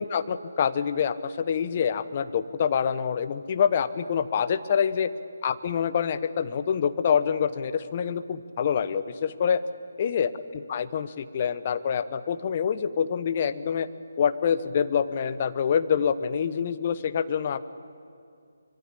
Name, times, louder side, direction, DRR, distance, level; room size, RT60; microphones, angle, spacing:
voice 1, 0.0-5.1 5.4-9.6 10.0-13.9 14.2-17.7, left 7 dB, 35° left, 12 dB, 1.1 m, -26 dB
25.5 x 23.5 x 8.5 m, 2.3 s
figure-of-eight pair, 150°, 0 cm